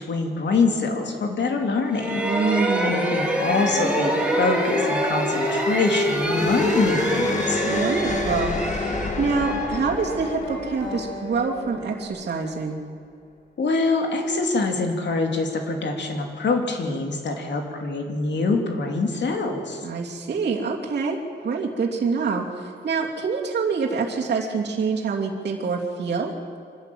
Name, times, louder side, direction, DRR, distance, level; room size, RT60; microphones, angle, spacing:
voice 1, 0.1-2.2 2.8-7.7 13.6-19.8, left 3 dB, 65° left, 3 dB, 3.0 m, -24 dB
sound 1, 1.9-10.6, right 1 dB, 5° right, 3.0 m, -26 dB
voice 2, 2.2-2.9 7.6-12.8 19.8-26.3, right 5 dB, 60° right, -4 dB, 2.9 m, -26 dB
sound 2, 2.8-12.1, left 3 dB, 40° left, 1.8 m, -30 dB
sound 3, 4.6-12.1, left 1 dB, 85° left, 6.3 m, -34 dB
25.0 x 13.0 x 9.3 m, 2.1 s
cardioid pair, 110°, 19 cm